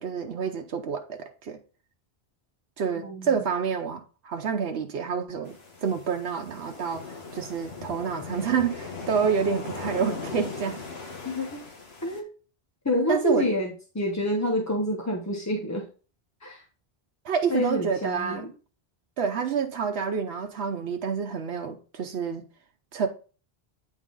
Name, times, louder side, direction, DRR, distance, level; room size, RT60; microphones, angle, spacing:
voice 1, 0.0-1.6 2.8-5.5 5.8-10.8 13.1-13.5 17.2-18.5 19.2-22.4 22.9-23.1, right 6 dB, 85° right, 1.0 m, -28 dB
sound 1, 5.4-12.2, left 4 dB, 75° left, 1.6 m, -39 dB
voice 2, 11.2-11.6 12.0-12.3 12.8-15.9 16.4-16.6 17.5-18.5, left 1 dB, 20° left, 0.7 m, -27 dB
9.0 x 3.8 x 3.8 m
omnidirectional pair, 1.1 m